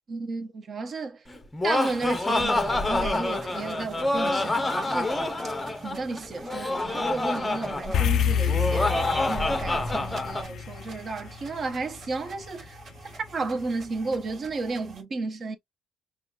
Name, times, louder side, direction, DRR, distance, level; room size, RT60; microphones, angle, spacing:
voice 1, 0.1-1.2 1.6-5.1 5.4-5.5 5.8-9.0 9.3-12.8 13.3-15.6, right 3 dB, 35° right, 0.8 m, -33 dB
Laughter, 1.3-10.5, left 2 dB, 10° left, 0.7 m, -27 dB
sound 1, 1.9-15.0, right 4 dB, 50° right, 1.5 m, -48 dB
sound 2, 7.9-12.4, left 8 dB, 60° left, 0.3 m, -28 dB
5.7 x 2.4 x 2.3 m
cardioid pair, 135°, 0 cm